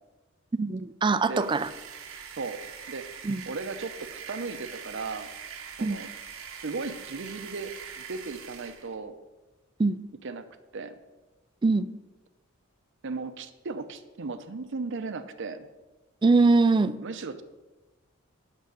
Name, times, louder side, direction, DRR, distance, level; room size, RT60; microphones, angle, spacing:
voice 1, 0.6-1.7 3.2-3.4 5.8-6.0 9.8-10.0 11.6-11.9 16.2-17.0, right 3 dB, 20° right, 14 dB, 0.3 m, -22 dB
voice 2, 1.2-1.6 2.4-2.6 2.9-3.1 3.5-5.3 5.8-6.1 6.6-9.1 10.2-10.5 10.7-10.9 13.0-15.7 17.0-17.4, right 4 dB, 60° right, 10 dB, 0.7 m, -36 dB
sound 1, 1.2-8.9, right 7 dB, 75° right, 1.0 m, -43 dB
8.2 x 6.3 x 6.3 m, 1.1 s
head